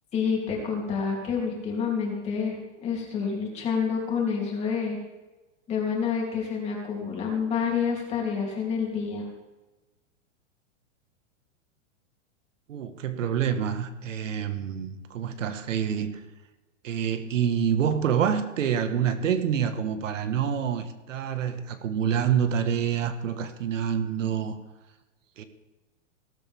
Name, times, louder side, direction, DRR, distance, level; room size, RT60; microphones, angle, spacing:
voice 1, 0.1-5.0 5.7-9.3, left 6 dB, 15° left, -2 dB, 3.4 m, -28 dB
voice 2, 12.7-16.2 16.8-24.6 25.4-25.5, right 8 dB, 75° right, 9 dB, 1.7 m, -27 dB
20.0 x 13.0 x 3.7 m, 1.1 s
supercardioid pair, 170°, 38 cm